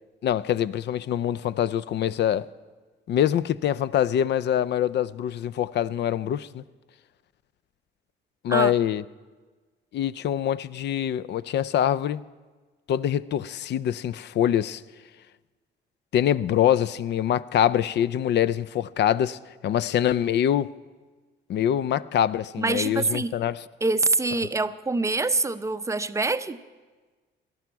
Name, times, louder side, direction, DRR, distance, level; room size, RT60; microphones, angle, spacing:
voice 1, 0.2-2.5 3.1-6.6 8.4-9.0 9.9-12.2 12.9-14.8 16.1-20.7 21.5-23.6, left 10 dB, 60° left, 0.4 m, -24 dB
voice 2, 22.6-23.3 23.8-26.6, right 3 dB, 15° right, 0.5 m, -25 dB
18.0 x 12.0 x 4.6 m
cardioid pair, 90°, 20 cm